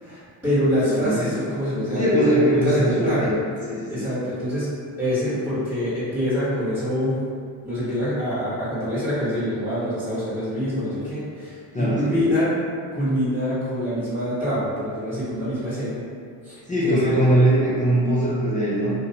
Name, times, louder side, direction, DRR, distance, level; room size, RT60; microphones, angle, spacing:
voice 1, 0.0-3.3 3.9-4.7 5.0-7.2 7.6-12.5 12.9-16.0 16.4-17.0 17.2-17.3, equal, 10° right, -13 dB, 1.1 m, -25 dB
voice 2, 0.9-1.2 2.0-3.3 3.7-4.1 11.7-12.2 16.7-18.9, right 1 dB, 20° left, -8 dB, 0.4 m, -21 dB
2.5 x 2.1 x 2.7 m, 2.2 s
cardioid pair, 85°, 43 cm